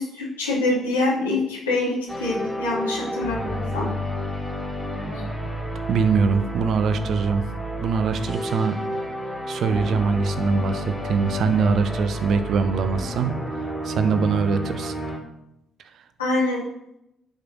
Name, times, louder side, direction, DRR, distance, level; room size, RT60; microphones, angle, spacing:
voice 1, 0.0-3.9 16.2-16.6, left 2 dB, 85° left, -4 dB, 2.6 m, -25 dB
sound 1, 2.1-15.2, equal, 10° left, 3.8 m, -30 dB
voice 2, 5.9-7.4 7.8-8.8 9.5-13.4 13.6-14.9, right 5 dB, 55° right, 11 dB, 0.9 m, -23 dB
10.0 x 5.3 x 6.3 m, 0.85 s
hypercardioid pair, 45°, 0 cm